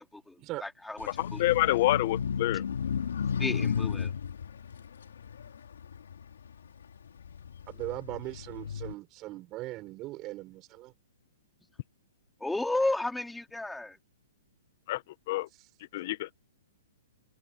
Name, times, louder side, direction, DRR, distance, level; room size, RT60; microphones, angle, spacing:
voice 1, 0.1-1.4 3.4-4.1 12.4-14.0, left 2 dB, 5° left, 4.0 m, -33 dB
sound 1, 1.0-6.5 7.1-8.9, left 7 dB, 80° left, 4.2 m, -33 dB
voice 2, 1.2-2.6 14.9-15.0 15.3-15.5 15.9-16.3, left 17 dB, 50° left, 1.6 m, -27 dB
voice 3, 7.7-10.9, right 18 dB, 30° right, 4.8 m, -39 dB
open air
hypercardioid pair, 140°, 0 cm